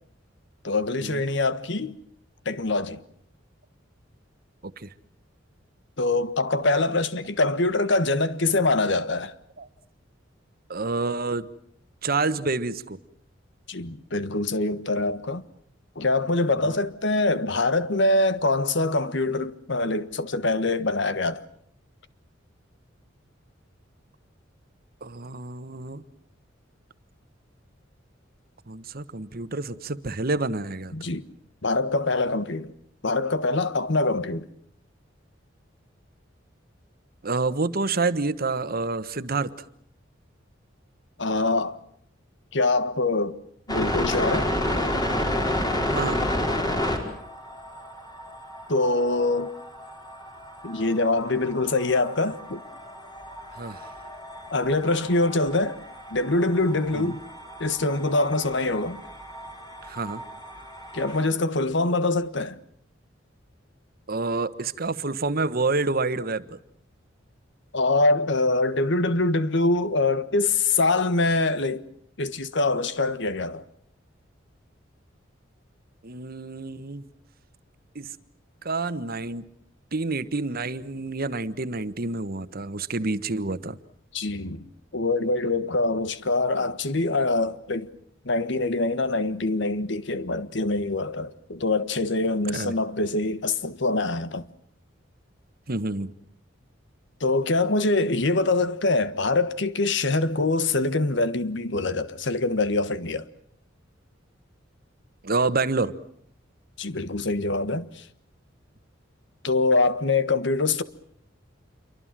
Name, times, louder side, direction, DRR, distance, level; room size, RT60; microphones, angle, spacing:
voice 1, 0.6-2.0 2.4-3.0 6.0-9.3 13.7-15.4 15.9-21.4 30.9-31.2 31.6-32.7 33.0-34.5 41.2-41.8 42.5-43.4 43.7-44.5 48.7-49.5 50.6-52.6 54.5-55.8 56.1-57.2 57.6-59.0 60.9-62.6 67.7-71.8 72.2-73.6 84.1-87.9 88.2-94.5 97.2-103.2 106.8-108.0 109.4-110.8, left 2 dB, 65° left, 1.5 m, -24 dB
voice 2, 4.6-4.9 9.6-9.7 10.7-11.5 12.0-13.0 25.0-26.0 28.7-30.9 37.2-39.5 45.9-46.2 53.5-54.0 56.9-57.1 59.8-60.2 64.1-66.6 76.0-77.0 77.9-78.1 78.6-79.5 79.9-83.8 92.5-92.7 95.7-96.1 105.2-105.9, right 3 dB, 50° right, 1.3 m, -28 dB
sound 1, 43.7-61.3, left 1 dB, 20° left, 5.0 m, -31 dB
28.0 x 24.0 x 7.5 m
head